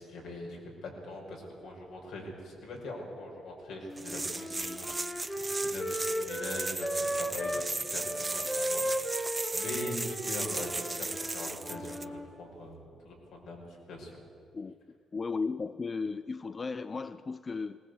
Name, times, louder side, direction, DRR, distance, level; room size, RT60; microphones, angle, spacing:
voice 1, 0.0-8.8 9.2-14.2, left 1 dB, 80° left, -1 dB, 5.4 m, -42 dB
Wind instrument woodwind instrument, 3.8-7.7 8.0-12.3, equal, 15° left, 1.6 m, -36 dB
sound 1, 4.0-12.1, right 3 dB, 20° right, 0.7 m, -36 dB
voice 2, 15.1-17.8, left 4 dB, 35° left, 13 dB, 0.5 m, -35 dB
19.0 x 18.5 x 8.2 m, 2.4 s
cardioid pair, 90°, 0 cm